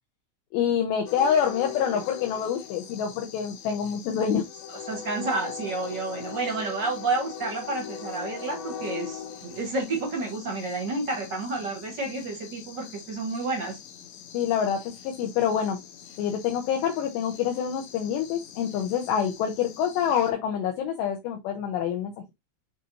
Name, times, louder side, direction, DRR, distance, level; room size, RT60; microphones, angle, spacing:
voice 1, 0.5-4.4 14.3-15.8 16.2-22.1, left 8 dB, 70° left, 2.9 m, -26 dB
sound 1, 1.1-20.3, left 7 dB, 90° left, 2.1 m, -41 dB
voice 2, 4.9-13.8, right 3 dB, 45° right, 1.3 m, -30 dB
9.5 x 3.4 x 2.9 m
omnidirectional pair, 5.8 m